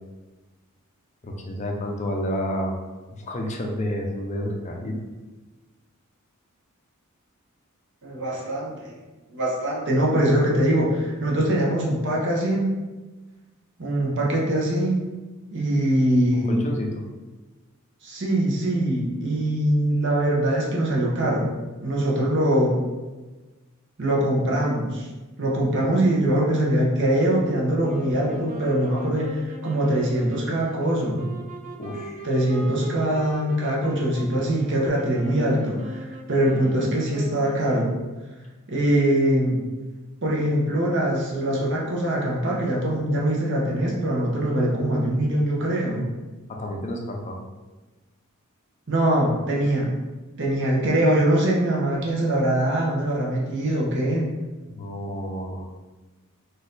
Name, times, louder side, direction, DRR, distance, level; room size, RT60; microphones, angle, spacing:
voice 1, 1.2-2.8 3.1-5.0 16.3-17.0 31.7-32.2 46.5-47.4 54.7-55.7, equal, 30° left, 1 dB, 0.5 m, -30 dB
voice 2, 8.0-9.0 9.3-12.7 13.8-15.0 15.5-16.6 18.0-22.8 24.0-25.1 25.4-31.3 32.2-38.0 38.7-39.6 40.2-46.1 48.9-49.9 50.4-54.3, right 1 dB, 55° right, -3 dB, 0.9 m, -23 dB
sound 1, 27.8-38.1, right 2 dB, 35° right, 0.5 m, -39 dB
4.0 x 2.6 x 3.9 m, 1.2 s
head